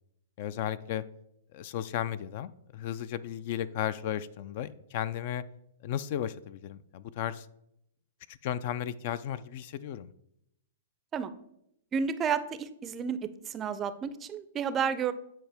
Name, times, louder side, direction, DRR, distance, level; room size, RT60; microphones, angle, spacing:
voice 1, 0.4-1.0 1.5-5.4 5.8-7.5 8.3-10.1, left 10 dB, 50° left, 17 dB, 0.3 m, -34 dB
voice 2, 11.9-15.1, right 7 dB, 20° right, 13 dB, 0.4 m, -31 dB
9.0 x 4.8 x 3.4 m, 0.78 s
hypercardioid pair, 145°, 0 cm